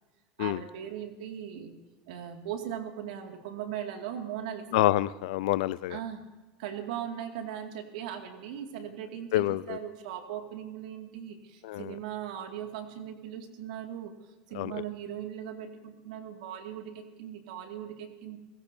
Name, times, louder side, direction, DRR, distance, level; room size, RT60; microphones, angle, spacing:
voice 1, 0.4-1.7 2.1-4.7 5.9-6.2 6.6-14.1 14.5-18.4, right 9 dB, 80° right, 4 dB, 2.2 m, -39 dB
voice 2, 4.7-6.0 9.3-9.8 11.6-11.9 14.5-14.7, left 16 dB, 80° left, 18 dB, 0.5 m, -27 dB
29.5 x 15.5 x 2.7 m, 1.1 s
supercardioid pair, 105°, 4 cm